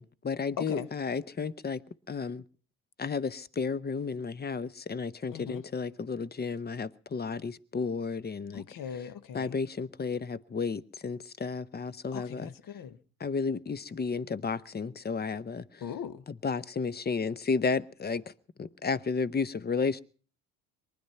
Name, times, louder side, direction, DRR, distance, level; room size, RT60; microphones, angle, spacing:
voice 1, 0.0-2.4 3.0-8.6 9.3-12.5 13.2-15.8 16.4-18.3 18.6-20.0, left 5 dB, 20° left, 0.8 m, -32 dB
voice 2, 0.6-0.9 5.3-5.6 8.5-9.6 12.1-13.0 15.8-16.2, left 8 dB, 45° left, 1.4 m, -39 dB
23.0 x 10.5 x 5.8 m
hypercardioid pair, 55°, 45 cm